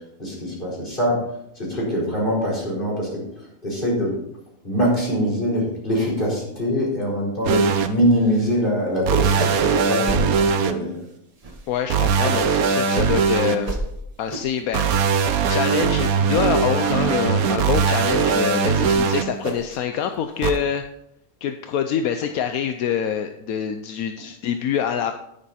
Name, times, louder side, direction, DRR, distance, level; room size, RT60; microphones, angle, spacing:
voice 1, 0.2-1.3 1.6-3.2 3.6-4.1 4.6-11.0, equal, 35° left, -4 dB, 4.8 m, -23 dB
sound 1, 7.4-7.9 9.1-10.7 11.9-13.5 14.7-19.2 20.4-20.5, right 6 dB, 80° right, 1.2 m, -20 dB
sound 2, 8.1-8.6 8.9-9.0 9.2-9.7 10.0-10.2 10.7-11.0 11.4-12.5 12.9-13.2 13.6-13.8 14.3-14.6 15.0-15.6 15.9-16.0 16.3-16.5 17.0-17.1 17.5-17.7 18.2-18.4 18.8-19.8 20.1-20.6, right 2 dB, 25° right, 1.2 m, -32 dB
voice 2, 11.7-13.7 14.2-14.8 15.5-20.8 21.4-25.1, left 8 dB, 80° left, 7 dB, 1.1 m, -25 dB
10.0 x 9.8 x 4.2 m, 0.77 s
omnidirectional pair, 1.5 m